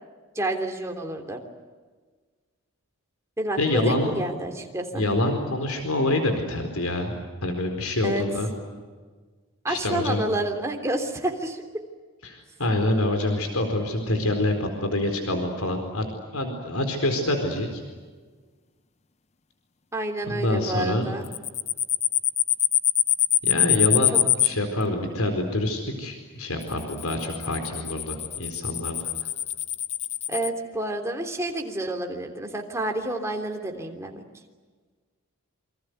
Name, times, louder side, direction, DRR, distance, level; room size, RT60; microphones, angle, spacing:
voice 1, 0.3-1.4 3.4-5.0 8.0-8.2 9.6-11.6 19.9-21.3 30.3-34.2, right 1 dB, 15° right, 2 dB, 3.2 m, -29 dB
voice 2, 3.6-4.3 4.9-7.1 7.4-8.5 9.7-10.2 12.2-16.0 16.3-17.8 20.3-21.2 23.4-29.1, left 1 dB, 90° left, 5 dB, 4.4 m, -26 dB
sound 1, 21.3-24.5 26.6-30.5, left 11 dB, 30° left, 0.7 m, -23 dB
28.5 x 25.5 x 8.1 m, 1.4 s
head